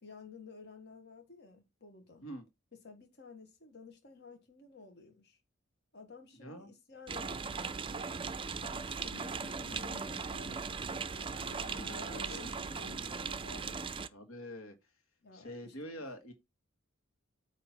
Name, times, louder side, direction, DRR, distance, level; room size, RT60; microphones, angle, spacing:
voice 1, 0.0-2.2 2.8-5.4 5.9-8.2 8.6-11.3 11.8-13.8 15.2-15.7 16.2-16.3, left 4 dB, 55° left, 1.5 m, -53 dB
voice 2, 6.4-6.7 11.3-12.6 14.1-14.8 15.3-16.3, equal, 80° left, 1.7 m, -46 dB
sound 1, 7.1-14.1, right 5 dB, 25° right, 0.4 m, -38 dB
8.6 x 3.0 x 5.9 m
head